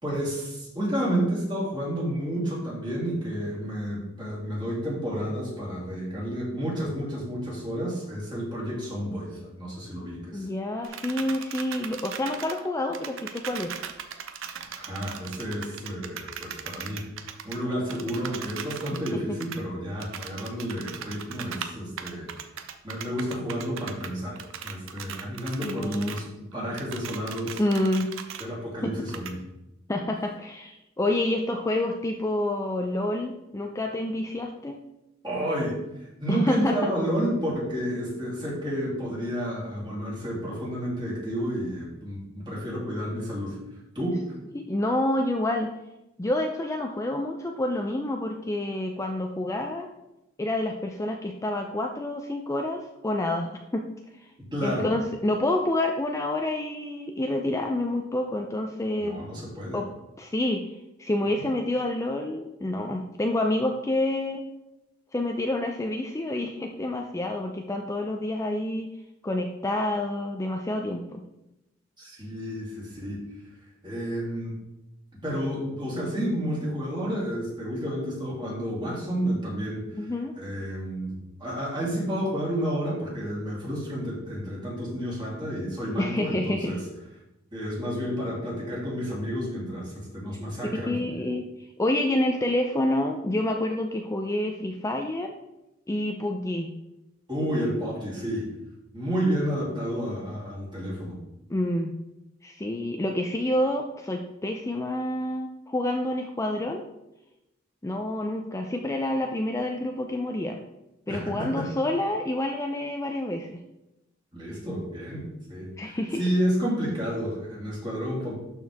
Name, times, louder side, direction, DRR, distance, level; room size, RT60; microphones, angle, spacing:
voice 1, 0.0-10.5 14.7-17.0 17.4-22.3 22.8-24.4 24.6-27.6 28.4-29.4 35.2-43.6 43.9-44.3 54.5-54.9 59.0-59.8 72.0-73.2 73.8-74.6 75.2-79.9 80.3-86.8 87.5-91.0 97.3-98.5 98.9-101.1 111.1-111.7 114.3-115.2 115.5-118.3, equal, 20° right, -5 dB, 3.0 m, -30 dB
voice 2, 10.3-13.8 19.1-19.4 25.6-26.3 27.6-28.1 28.8-28.9 29.9-34.8 36.3-36.9 44.5-45.7 46.2-49.9 50.4-53.8 54.2-54.3 54.6-59.2 59.7-59.9 60.2-60.6 61.0-64.4 65.1-68.9 69.2-71.2 79.9-80.4 86.0-86.8 90.6-95.3 95.9-96.7 101.5-101.9 102.4-106.8 107.8-110.6 111.1-113.6 115.8-116.2, left 1 dB, 15° left, 3 dB, 0.5 m, -28 dB
sound 1, 10.8-12.7 12.9-19.1 19.4-19.6 20.0-21.7 22.0-24.1 24.4-26.2 26.5-28.5 29.1-29.3, right 8 dB, 70° right, 0.7 m, -39 dB
12.0 x 4.6 x 3.5 m, 0.92 s
head